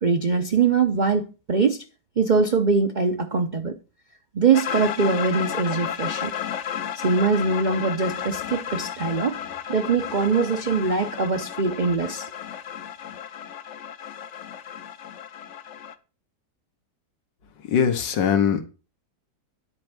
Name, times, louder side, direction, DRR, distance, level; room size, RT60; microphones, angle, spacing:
voice 1, 0.0-1.8 2.2-3.8 4.3-6.3 6.9-9.4 9.7-12.3, right 4 dB, 50° right, 0.5 m, -22 dB
sound 1, 4.5-15.9, left 9 dB, 60° left, 0.8 m, -33 dB
voice 2, 17.6-18.6, left 7 dB, 90° left, 1.9 m, -21 dB
10.5 x 4.5 x 6.8 m
omnidirectional pair, 1.9 m